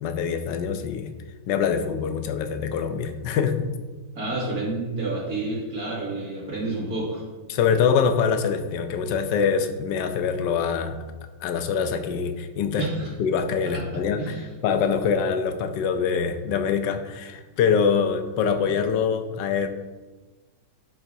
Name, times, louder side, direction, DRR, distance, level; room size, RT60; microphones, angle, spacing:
voice 1, 0.0-1.1 1.5-3.7 7.5-11.0 11.4-12.9 13.2-19.7, left 6 dB, 90° left, 8 dB, 1.3 m, -24 dB
voice 2, 4.1-7.2 12.8-13.1 13.7-13.8 14.2-14.4, right 2 dB, 60° right, -5 dB, 2.7 m, -29 dB
11.0 x 4.9 x 2.7 m, 1.2 s
omnidirectional pair, 1.8 m